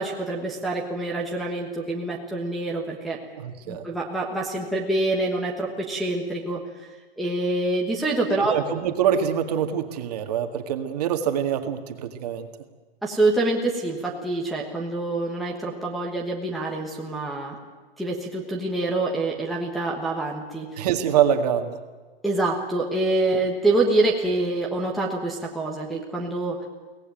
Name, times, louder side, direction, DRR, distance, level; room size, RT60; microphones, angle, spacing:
voice 1, 0.0-3.2 3.7-6.6 7.2-8.5 13.0-17.6 18.0-20.7 22.2-26.6, right 2 dB, ahead, -4 dB, 1.3 m, -26 dB
voice 2, 3.4-3.8 8.4-12.5 20.8-21.8, right 9 dB, 40° right, 7 dB, 1.9 m, -25 dB
24.0 x 18.0 x 9.2 m, 1.4 s
supercardioid pair, 180°, 31 cm